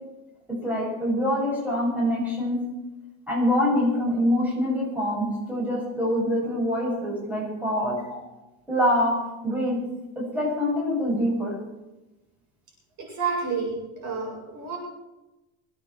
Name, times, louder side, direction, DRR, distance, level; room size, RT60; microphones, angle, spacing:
voice 1, 0.6-2.6 3.3-8.0 8.7-9.1 9.4-9.8 10.1-11.5, left 1 dB, 5° right, -5 dB, 6.7 m, -25 dB
voice 2, 13.0-13.8 14.0-14.8, right 5 dB, 45° right, -1 dB, 7.5 m, -29 dB
27.5 x 9.4 x 4.7 m, 1.0 s
supercardioid pair, 145°, 43 cm